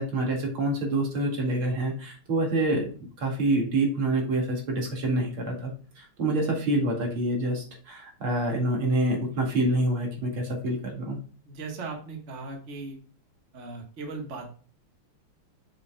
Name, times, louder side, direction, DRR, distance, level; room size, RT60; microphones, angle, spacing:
voice 1, 0.0-11.2, right 1 dB, 75° right, 0 dB, 3.0 m, -27 dB
voice 2, 11.5-13.0 13.5-14.5, right 3 dB, 35° right, 2 dB, 1.7 m, -38 dB
7.4 x 7.3 x 2.3 m, 0.41 s
omnidirectional pair, 2.4 m